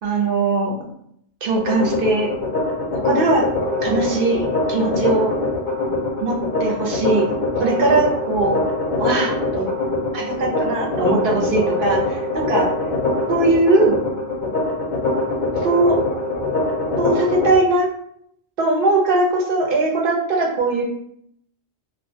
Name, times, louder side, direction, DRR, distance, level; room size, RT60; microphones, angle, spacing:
voice 1, 0.0-0.9 1.4-2.3 2.9-3.5 3.8-5.3 6.2-7.3 7.6-8.6 9.0-9.7 10.1-12.2 12.5-12.6 13.3-14.0 15.6-16.0 17.0-17.9 18.6-20.8, right 2 dB, 60° right, -1 dB, 0.7 m, -20 dB
sound 1, 1.6-17.6, left 2 dB, 55° left, 0.6 m, -23 dB
2.2 x 2.1 x 2.6 m, 0.70 s
omnidirectional pair, 1.1 m